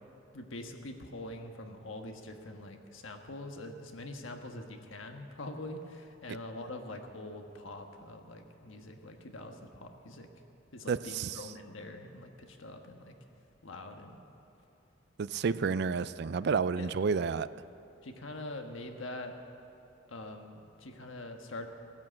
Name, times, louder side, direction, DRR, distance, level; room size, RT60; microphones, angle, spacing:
voice 1, 0.3-10.3 10.7-13.1 13.6-14.2 16.8-17.0 18.0-19.3 20.1-21.7, left 2 dB, 85° left, 4 dB, 1.4 m, -44 dB
voice 2, 10.9-11.4 15.2-17.5, right 5 dB, 55° right, 16 dB, 0.4 m, -30 dB
16.5 x 10.5 x 7.6 m, 2.8 s
head